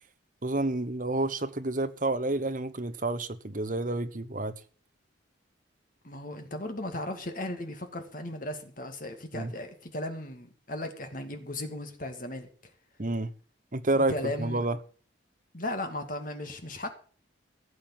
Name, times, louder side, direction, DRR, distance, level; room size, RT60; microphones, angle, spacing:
voice 1, 0.4-4.5 9.3-9.5 13.0-13.3 13.7-14.8, right 2 dB, 40° right, 1.1 m, -29 dB
voice 2, 6.0-12.5 13.9-14.7 15.5-16.9, left 1 dB, 45° left, 2.2 m, -36 dB
16.0 x 7.7 x 7.2 m
head